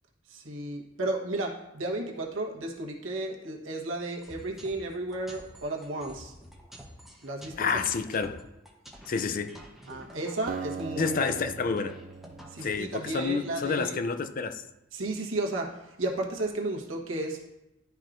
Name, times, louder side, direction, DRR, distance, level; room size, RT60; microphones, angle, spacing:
voice 1, 0.3-6.3 7.2-7.8 9.9-11.4 12.5-14.0 14.9-17.4, right 2 dB, 85° right, 1.2 m, -33 dB
sound 1, 4.2-13.9, equal, ahead, 0.9 m, -50 dB
voice 2, 7.6-8.4 9.1-9.6 11.0-12.0 12.6-14.6, left 5 dB, 45° left, 0.4 m, -29 dB
Acoustic guitar, 10.5-14.0, right 5 dB, 45° right, 0.4 m, -41 dB
11.5 x 4.5 x 2.6 m
head